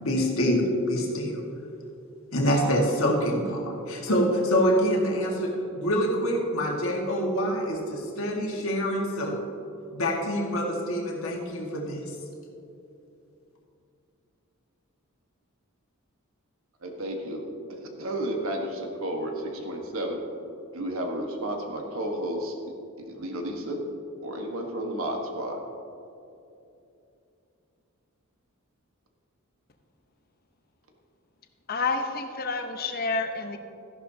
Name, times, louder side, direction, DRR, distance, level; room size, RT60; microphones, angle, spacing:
voice 1, 0.0-1.4 2.3-9.4 9.9-12.1, equal, 65° left, -1 dB, 1.7 m, -26 dB
voice 2, 16.8-20.2 20.7-23.8 24.2-25.6, right 1 dB, 70° right, 2 dB, 1.4 m, -32 dB
voice 3, 31.7-33.6, left 3 dB, 45° left, 6 dB, 0.9 m, -29 dB
14.0 x 11.0 x 2.8 m, 2.7 s
head